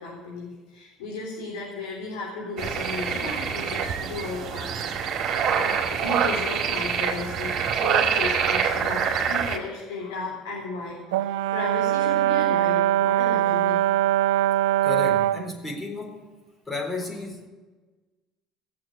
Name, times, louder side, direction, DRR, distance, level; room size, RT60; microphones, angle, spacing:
voice 1, 0.0-4.7 4.9-5.1 5.5-13.8, left 3 dB, 85° left, -5 dB, 4.2 m, -35 dB
sound 1, 2.6-9.6, right 7 dB, 50° right, 2.3 m, -25 dB
Brass instrument, 11.1-15.5, right 12 dB, 80° right, 0.4 m, -22 dB
voice 2, 14.8-16.2 16.7-17.5, left 3 dB, 20° left, 1 dB, 3.9 m, -33 dB
16.0 x 7.7 x 9.6 m, 1.3 s
hypercardioid pair, 80°, 0 cm